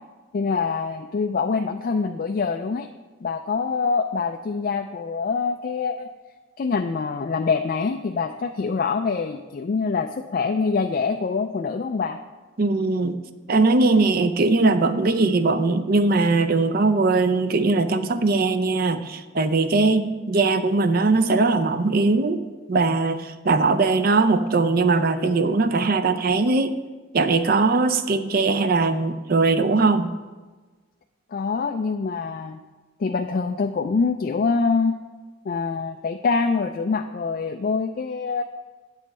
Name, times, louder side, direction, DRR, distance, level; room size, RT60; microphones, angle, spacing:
voice 1, 0.3-2.9 3.2-6.1 6.6-12.2 31.3-32.6 33.0-35.0 35.5-38.4, left 4 dB, 45° left, 5 dB, 0.3 m, -25 dB
voice 2, 12.6-13.2 13.5-22.4 22.7-26.8 27.1-30.1, right 3 dB, 45° right, 10 dB, 0.5 m, -20 dB
8.9 x 7.3 x 4.2 m, 1.3 s
head